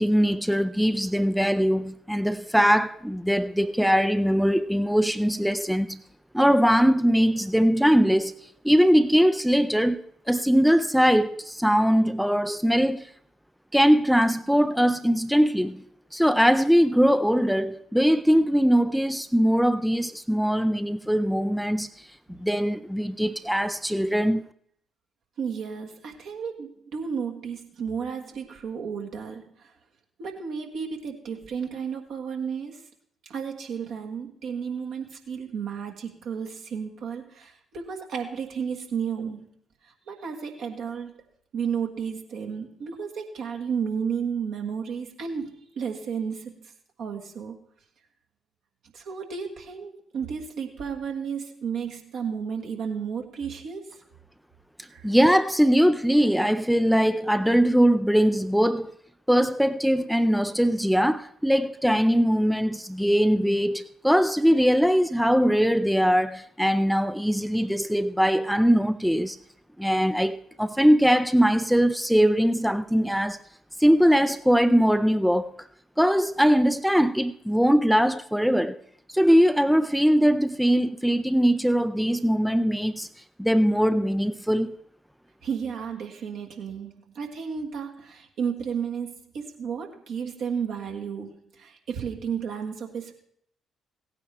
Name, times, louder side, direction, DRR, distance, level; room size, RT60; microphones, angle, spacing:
voice 1, 0.0-6.0 6.3-8.3 8.6-13.1 13.7-15.8 16.1-24.4 55.0-58.9 59.3-69.4 69.8-73.4 73.8-75.6 76.0-78.8 79.1-83.1 83.4-84.8, equal, ahead, 0.4 m, -21 dB
voice 2, 25.4-29.7 30.2-32.8 33.2-39.5 40.1-41.1 41.5-46.7 47.0-47.5 48.9-54.0 54.9-55.1 85.4-93.1, right 6 dB, 60° right, 1.6 m, -33 dB
17.0 x 9.2 x 3.3 m
figure-of-eight pair, 40°, 0 cm